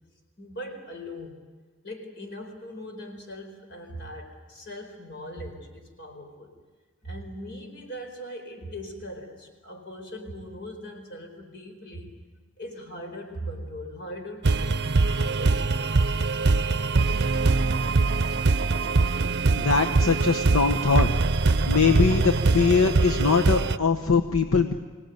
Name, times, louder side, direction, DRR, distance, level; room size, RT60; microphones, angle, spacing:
voice 1, 0.4-1.4 1.8-6.5 7.0-12.2 12.6-16.1, equal, 55° left, 4 dB, 4.5 m, -40 dB
sound 1, 14.4-23.8, right 3 dB, 50° right, 0.7 m, -23 dB
voice 2, 19.6-21.1 21.7-24.7, left 5 dB, 80° left, 6 dB, 1.0 m, -22 dB
25.0 x 18.0 x 9.4 m, 1.4 s
head